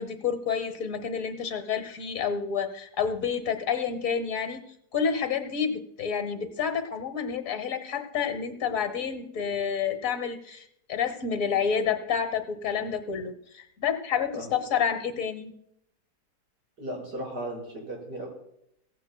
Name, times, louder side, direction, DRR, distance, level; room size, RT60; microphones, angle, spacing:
voice 1, 0.0-4.6 4.9-15.5, left 7 dB, 55° left, 9 dB, 1.3 m, -29 dB
voice 2, 16.8-18.3, right 1 dB, 85° right, -2 dB, 5.5 m, -36 dB
17.0 x 15.5 x 2.3 m, 0.73 s
omnidirectional pair, 1.8 m